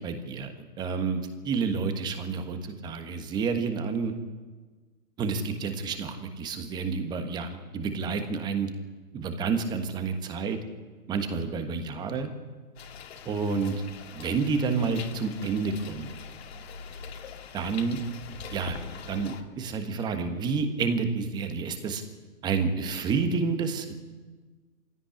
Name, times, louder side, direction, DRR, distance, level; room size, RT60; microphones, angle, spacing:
voice 1, 0.0-4.1 5.2-8.7 9.1-10.6 11.1-12.3 13.2-13.7 14.1-16.1 17.5-18.0 18.5-18.8 19.1-22.0 22.4-23.9, right 5 dB, 10° right, 7 dB, 1.4 m, -29 dB
sound 1, 12.8-19.4, left 5 dB, 40° left, 2.5 m, -43 dB
25.0 x 16.5 x 9.9 m, 1.4 s
figure-of-eight pair, 140°, 48 cm